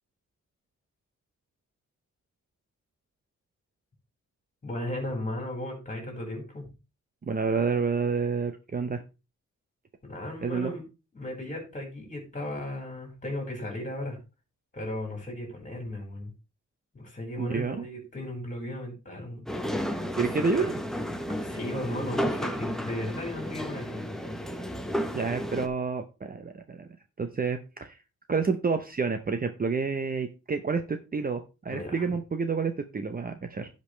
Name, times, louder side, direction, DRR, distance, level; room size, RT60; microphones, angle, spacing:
voice 1, 4.6-6.7 10.0-10.8 11.1-14.2 14.7-16.3 16.9-20.2 20.6-20.7 21.4-24.0 31.7-32.0, left 1 dB, 25° left, 1 dB, 4.6 m, -36 dB
voice 2, 7.3-9.0 10.4-10.7 17.4-17.9 20.2-20.7 25.1-26.9 27.2-28.0 28.3-33.7, right 5 dB, 30° right, 7 dB, 0.7 m, -29 dB
sound 1, 19.5-25.7, equal, ahead, 0.9 m, -32 dB
15.5 x 5.3 x 3.3 m, 0.29 s
wide cardioid pair, 175°, 30 cm